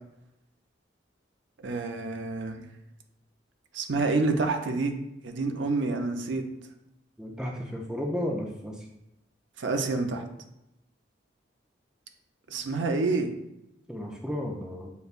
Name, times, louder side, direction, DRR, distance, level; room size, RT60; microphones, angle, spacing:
voice 1, 1.6-2.6 3.7-4.9 5.2-6.4 9.6-10.2 12.5-13.3, right 3 dB, 70° right, 5 dB, 0.5 m, -28 dB
voice 2, 7.2-8.9 13.9-14.9, left 1 dB, 5° right, -1 dB, 0.4 m, -33 dB
6.4 x 2.2 x 2.4 m, 0.86 s
head